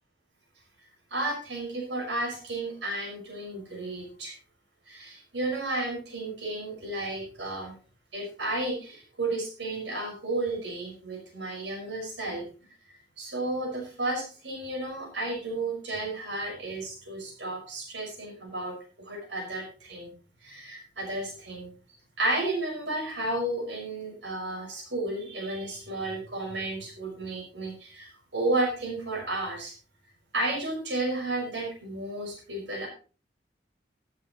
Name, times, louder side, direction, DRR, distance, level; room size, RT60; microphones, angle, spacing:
voice 1, 1.1-4.3 4.9-7.7 8.1-12.4 13.2-18.7 19.1-20.1 20.4-21.7 22.2-29.7 30.3-32.9, right 2 dB, 80° right, 0 dB, 5.7 m, -32 dB
13.5 x 12.5 x 3.1 m, 0.36 s
head